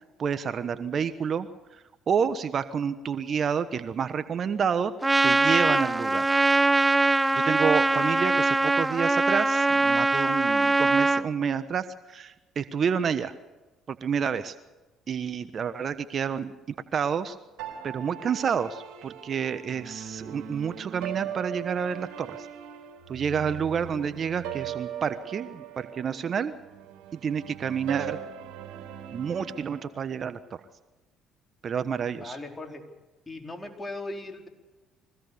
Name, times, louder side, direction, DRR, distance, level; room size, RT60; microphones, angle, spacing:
voice 1, 0.2-4.9 5.2-6.3 7.3-13.3 13.9-14.5 15.1-16.5 16.9-17.4 17.8-22.5 23.1-26.5 27.1-28.2 29.1-30.6 31.6-32.4, right 7 dB, 50° right, 12 dB, 1.2 m, -29 dB
Trumpet, 5.0-11.2, right 2 dB, 15° right, 1.0 m, -22 dB
sound 1, 17.6-29.8, right 10 dB, 75° right, 3.8 m, -40 dB
voice 2, 32.0-32.8 33.3-34.5, left 2 dB, 15° left, 3 dB, 4.5 m, -38 dB
23.5 x 16.5 x 6.9 m, 1.1 s
supercardioid pair, 65°, 0 cm